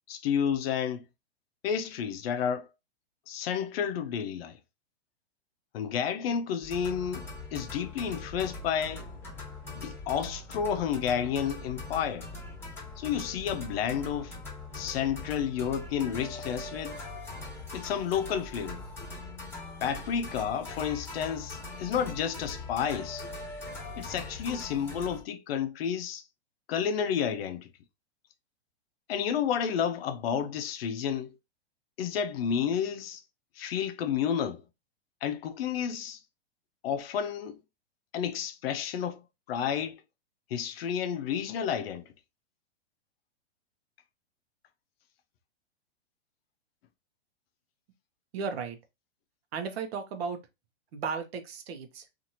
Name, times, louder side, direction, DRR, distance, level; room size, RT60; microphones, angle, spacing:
voice 1, 0.1-1.0 1.6-2.7 3.3-4.6 5.7-9.1 9.7-12.2 13.0-14.4 14.7-17.0 17.7-18.8 19.8-23.3 24.0-26.2 26.7-27.7 29.1-31.3 32.0-33.2 33.6-34.6 35.2-36.2 36.8-37.6 38.1-39.2 39.5-40.0 40.5-42.1, left 8 dB, 60° left, 0.5 m, -31 dB
sound 1, 6.6-25.2, left 2 dB, 5° left, 1.2 m, -41 dB
voice 2, 48.3-48.8 49.5-50.4 50.9-52.1, right 5 dB, 60° right, 0.8 m, -35 dB
2.7 x 2.5 x 2.8 m
hypercardioid pair, 140°, 35 cm